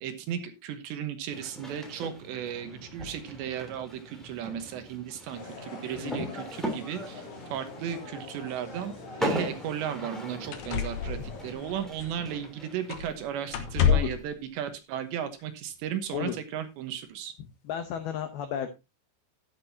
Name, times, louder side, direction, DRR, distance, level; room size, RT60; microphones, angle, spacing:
voice 1, 0.0-8.9 9.2-17.3, right 9 dB, 70° right, 8 dB, 3.1 m, -35 dB
sound 1, 1.3-14.2, equal, ahead, 1.9 m, -40 dB
sound 2, 5.3-11.5, left 3 dB, 45° left, 5.4 m, -45 dB
voice 2, 6.0-6.4 13.9-14.1 16.1-16.4 17.6-18.7, left 9 dB, 85° left, 8 dB, 2.2 m, -33 dB
sound 3, 10.0-10.1 10.5-12.5 12.9-13.2 13.5-14.3 15.4-15.5, left 8 dB, 65° left, 2.9 m, -29 dB
12.5 x 11.0 x 2.8 m, 0.24 s
omnidirectional pair, 5.8 m